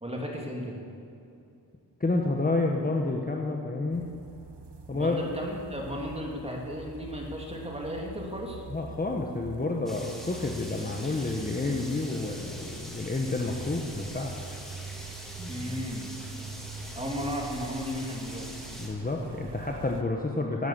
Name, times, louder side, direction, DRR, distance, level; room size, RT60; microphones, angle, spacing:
voice 1, 0.0-0.8 4.9-8.6 15.4-16.1 16.9-18.5, equal, 15° right, -1 dB, 2.7 m, -35 dB
voice 2, 2.0-4.1 4.9-5.2 8.7-14.3 18.8-20.7, left 2 dB, 20° left, 1 dB, 1.1 m, -29 dB
sound 1, 3.9-20.0, right 4 dB, 85° right, 1.2 m, -44 dB
sound 2, 9.9-18.9, equal, ahead, 2.6 m, -44 dB
17.5 x 8.9 x 7.3 m, 2.6 s
wide cardioid pair, 110°, 40 cm